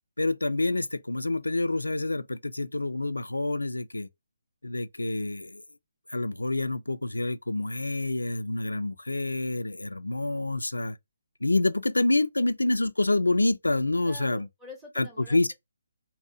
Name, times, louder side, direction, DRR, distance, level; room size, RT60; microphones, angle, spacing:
voice 1, 0.2-4.1 4.6-5.6 6.1-11.0 11.4-14.5 15.0-15.5, left 2 dB, 85° left, 0.3 m, -27 dB
voice 2, 14.0-15.5, left 1 dB, 10° right, 0.7 m, -46 dB
2.7 x 2.1 x 2.3 m
figure-of-eight pair, 145°, 0 cm